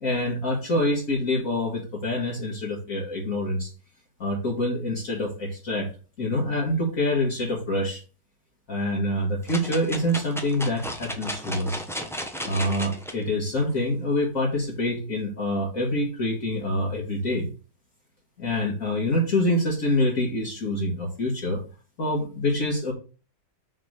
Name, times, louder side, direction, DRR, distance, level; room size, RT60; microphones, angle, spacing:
voice 1, 0.0-3.7 4.2-5.9 6.2-8.0 8.7-11.8 12.4-17.5 18.4-21.6 22.0-22.9, left 1 dB, 50° left, -2 dB, 2.0 m, -26 dB
sound 1, 9.5-13.1 13.7-13.8, equal, ahead, 0.6 m, -34 dB
6.3 x 3.7 x 6.2 m, 0.36 s
omnidirectional pair, 1.9 m